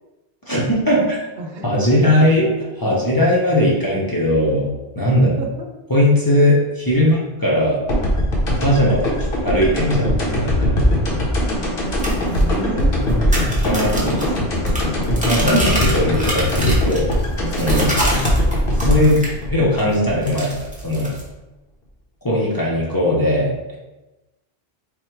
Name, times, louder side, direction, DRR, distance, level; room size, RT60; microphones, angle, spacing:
voice 1, 0.5-1.2 1.6-2.4 2.8-4.7 5.0-5.3 5.9-7.8 8.6-9.1 9.4-10.8 13.6-14.2 15.0-17.1 17.5-17.9 18.8-19.2 19.5-21.1 22.2-23.8, left 1 dB, 25° left, -5 dB, 0.7 m, -18 dB
voice 2, 1.4-1.9 2.2-2.3 2.6-2.7 3.6-3.9 5.2-5.7 12.3-13.4 14.0-14.9 17.7-18.0, right 2 dB, 75° right, 3 dB, 0.8 m, -32 dB
sound 1, 7.9-20.7, equal, 65° left, 1.1 m, -20 dB
sound 2, 11.9-19.4 19.7-21.3, right 1 dB, 10° right, 0.8 m, -27 dB
3.6 x 2.1 x 4.4 m, 1.0 s
omnidirectional pair, 1.0 m